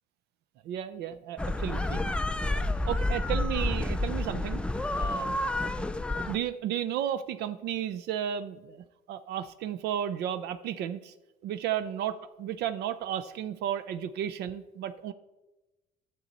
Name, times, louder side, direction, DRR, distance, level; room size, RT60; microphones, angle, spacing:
voice 1, 0.6-2.0 2.5-4.6 5.0-5.3 6.1-11.1 11.4-15.1, right 10 dB, 75° right, 12 dB, 0.5 m, -33 dB
sound 1, 1.4-6.4, left 2 dB, 5° left, 0.3 m, -29 dB
10.0 x 6.8 x 4.0 m, 1.1 s
cardioid pair, 110°, 17 cm